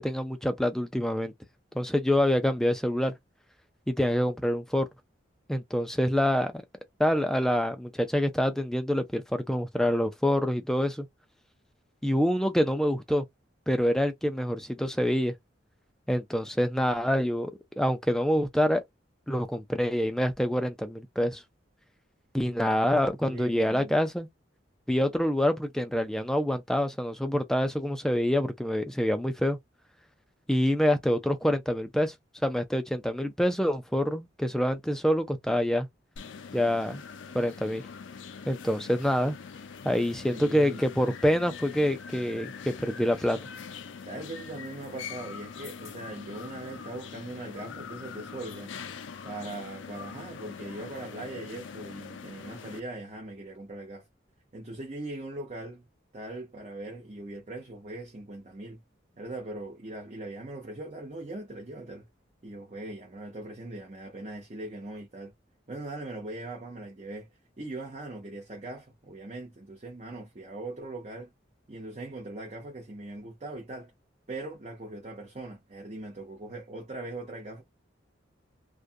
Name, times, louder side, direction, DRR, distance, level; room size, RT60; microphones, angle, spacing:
voice 1, 0.0-1.3 1.7-3.1 3.9-4.9 5.5-6.5 7.0-11.1 12.0-13.2 13.7-15.3 16.1-17.5 17.8-18.8 19.3-21.4 22.3-24.3 24.9-29.6 30.5-32.1 32.4-35.9 36.5-37.0 37.3-37.8 38.5-39.4 39.8-43.4, equal, 5° left, 0.4 m, -26 dB
voice 2, 23.2-23.9 40.3-40.8 44.1-48.7 49.2-54.1 54.5-55.9 56.1-58.8 59.2-62.1 62.4-65.3 65.7-67.3 67.6-71.3 71.7-73.9 74.3-77.6, right 2 dB, 35° right, 0.7 m, -40 dB
sound 1, 36.2-52.8, left 6 dB, 85° left, 0.4 m, -43 dB
2.4 x 2.2 x 2.5 m
head